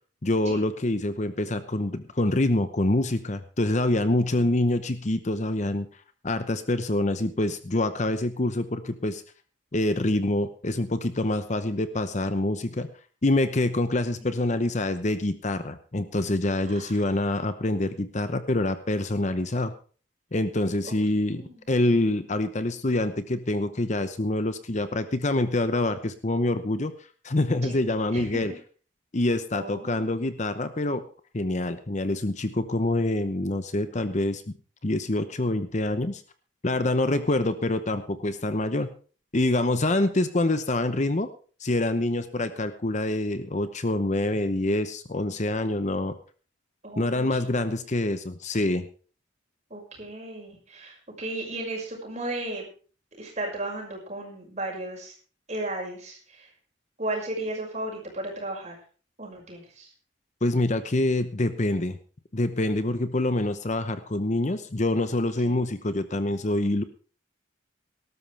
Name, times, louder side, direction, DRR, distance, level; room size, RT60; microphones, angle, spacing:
voice 1, 0.2-5.9 6.2-9.2 9.7-12.9 13.2-19.7 20.3-26.9 27.2-28.5 29.1-31.0 31.3-34.4 34.8-36.2 36.6-38.9 39.3-41.3 41.6-46.2 47.0-48.9 60.4-62.0 62.3-66.8, left 2 dB, 40° left, 11 dB, 0.8 m, -26 dB
voice 2, 14.2-14.6 16.7-17.0 20.8-21.6 27.6-27.8 28.1-28.4 29.5-30.3 37.4-37.7 46.8-47.7 49.7-52.7 53.2-55.1 55.5-56.5 57.0-58.8 59.2-59.9 65.4-65.6, right 1 dB, 35° right, -1 dB, 5.8 m, -35 dB
19.0 x 12.5 x 3.4 m, 0.39 s
head